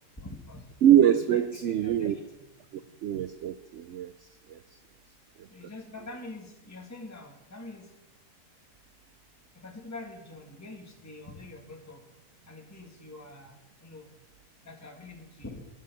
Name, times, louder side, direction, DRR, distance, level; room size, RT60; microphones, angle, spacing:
voice 1, 0.2-0.6 1.1-2.5 5.5-7.9 9.5-12.0 12.5-14.1 14.7-15.7, left 2 dB, 10° left, 2 dB, 1.7 m, -45 dB
voice 2, 0.8-2.1 3.0-4.1 4.5-4.6 5.4-5.5, right 10 dB, 70° right, 12 dB, 0.7 m, -23 dB
11.5 x 10.5 x 7.0 m, 0.97 s
omnidirectional pair, 1.8 m